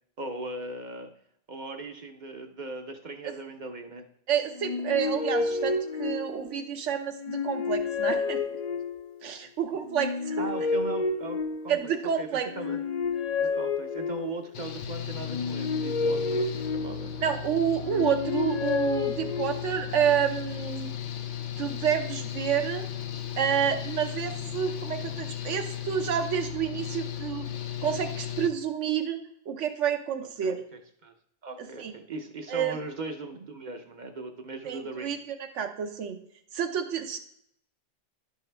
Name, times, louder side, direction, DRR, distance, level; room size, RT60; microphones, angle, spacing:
voice 1, 0.2-1.1 1.5-4.0 9.4-9.5 10.4-12.3 12.6-12.8 13.4-17.1 30.4-31.1 31.4-35.2, right 2 dB, 45° right, 5 dB, 0.7 m, -39 dB
voice 2, 4.3-8.4 9.2-10.5 11.7-12.5 17.2-20.9 21.6-22.9 23.4-27.5 27.8-29.2 29.5-30.6 31.8-31.9 32.5-32.8 34.6-36.2 36.5-37.2, right 8 dB, 80° right, 7 dB, 1.1 m, -29 dB
sound 1, 4.6-6.7 7.2-9.2 9.9-12.0 12.5-14.5 15.2-17.3 17.8-19.8, left 4 dB, 55° left, 0.4 m, -30 dB
Engine / Mechanical fan, 14.5-28.5, left 10 dB, 80° left, 1.0 m, -36 dB
11.5 x 4.5 x 3.3 m, 0.71 s
omnidirectional pair, 1.2 m